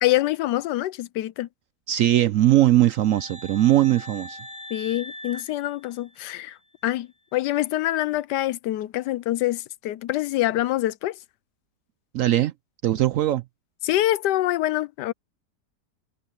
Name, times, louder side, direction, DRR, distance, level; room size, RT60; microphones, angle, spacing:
voice 1, 0.0-1.5 4.7-6.6 6.8-11.2 13.8-15.1, left 15 dB, 90° left, 1.2 m, -25 dB
voice 2, 1.9-4.4 12.1-12.5 12.8-13.4, right 13 dB, 70° right, 0.8 m, -20 dB
sound 1, 2.4-6.5, left 1 dB, 5° right, 2.7 m, -42 dB
omnidirectional pair, 1.8 m